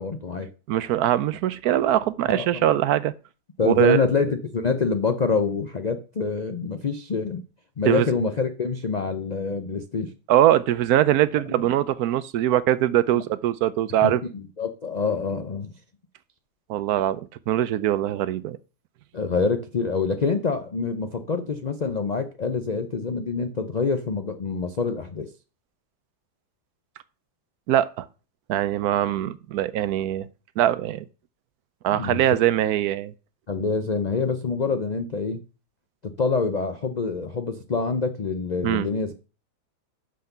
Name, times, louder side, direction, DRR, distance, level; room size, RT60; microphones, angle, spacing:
voice 1, 0.0-0.5 2.3-2.6 3.6-7.4 7.8-10.1 11.5-11.6 13.1-13.2 14.0-15.7 19.1-25.3 31.9-32.2 33.5-35.4 36.2-39.1, left 4 dB, 80° left, 0.3 m, -26 dB
voice 2, 0.7-3.1 3.6-4.0 7.8-8.1 10.3-14.2 16.7-17.2 17.5-18.6 27.7-28.1 28.5-30.3 30.6-31.0 31.8-33.1 38.6-38.9, right 12 dB, 70° right, 1.0 m, -22 dB
6.4 x 5.8 x 6.6 m
omnidirectional pair, 1.8 m